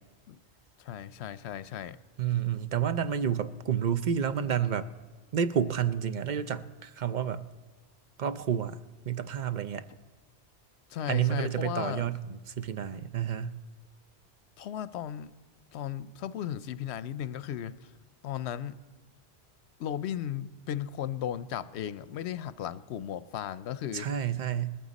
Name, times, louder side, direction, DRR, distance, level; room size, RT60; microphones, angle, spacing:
voice 1, 0.8-2.0 10.9-12.0 14.6-15.3 15.7-17.7 18.2-18.8 19.8-24.1, left 10 dB, 80° left, 16 dB, 0.9 m, -35 dB
voice 2, 2.2-4.9 5.3-7.4 8.2-8.8 9.1-9.8 11.1-13.5 23.9-24.8, right 8 dB, 50° right, 12 dB, 0.6 m, -30 dB
19.5 x 14.0 x 4.1 m, 1.4 s
omnidirectional pair, 1.1 m